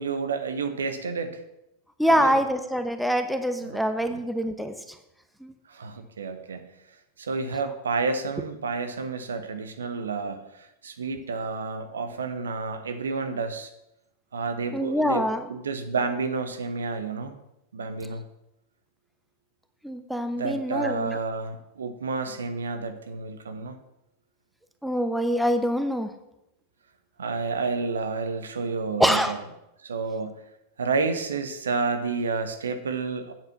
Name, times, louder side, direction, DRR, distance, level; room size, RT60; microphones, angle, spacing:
voice 1, 0.0-1.4 2.1-2.4 5.7-6.6 7.2-10.4 10.8-13.7 14.3-17.3 17.7-18.2 20.3-23.8 27.2-29.4 29.8-30.4 30.8-33.3, right 4 dB, 70° right, 8 dB, 1.1 m, -30 dB
voice 2, 2.0-4.7 5.4-5.5 14.7-15.5 19.8-21.2 24.8-26.1 29.0-29.4, equal, ahead, 8 dB, 1.0 m, -25 dB
9.1 x 7.9 x 5.9 m, 0.87 s
figure-of-eight pair, 90°, 0 cm